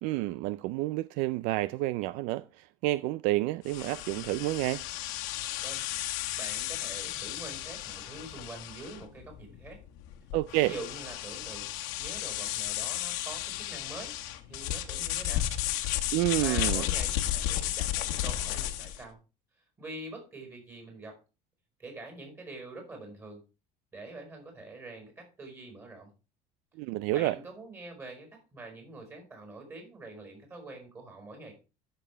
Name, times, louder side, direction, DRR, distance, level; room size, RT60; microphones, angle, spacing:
voice 1, 0.0-4.8 10.3-10.7 16.1-16.9 26.8-27.4, right 17 dB, 65° right, 0.4 m, -29 dB
sound 1, 3.7-19.0, left 13 dB, 75° left, 1.3 m, -34 dB
voice 2, 6.4-9.8 10.6-11.7 12.0-14.1 14.5-15.5 16.4-19.2 19.8-21.2 21.8-23.4 23.9-26.1 27.1-31.5, right 2 dB, 20° right, 4.9 m, -45 dB
13.5 x 6.8 x 3.4 m
cardioid pair, 170°, 14 cm